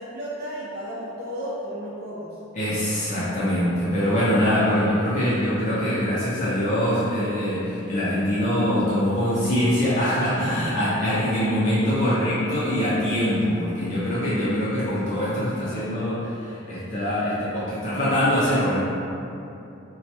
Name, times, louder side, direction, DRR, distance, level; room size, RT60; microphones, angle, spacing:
voice 1, 0.0-2.4, equal, 45° right, -9 dB, 0.6 m, -34 dB
voice 2, 2.6-18.8, equal, 35° left, -10 dB, 0.5 m, -23 dB
2.8 x 2.2 x 4.1 m, 2.7 s
head